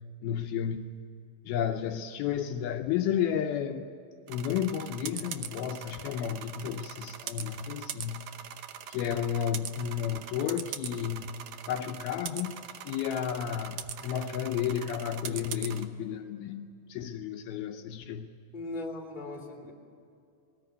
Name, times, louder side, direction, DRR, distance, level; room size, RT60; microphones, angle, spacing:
voice 1, 0.2-1.0 1.5-3.9 4.3-8.3 8.9-12.6 12.8-18.3, left 9 dB, 80° left, 5 dB, 2.5 m, -32 dB
sound 1, 4.3-15.9, right 10 dB, 90° right, 1.6 m, -42 dB
voice 2, 18.5-19.7, left 2 dB, 15° left, 0 dB, 2.5 m, -38 dB
20.5 x 19.0 x 9.6 m, 2.5 s
omnidirectional pair, 4.6 m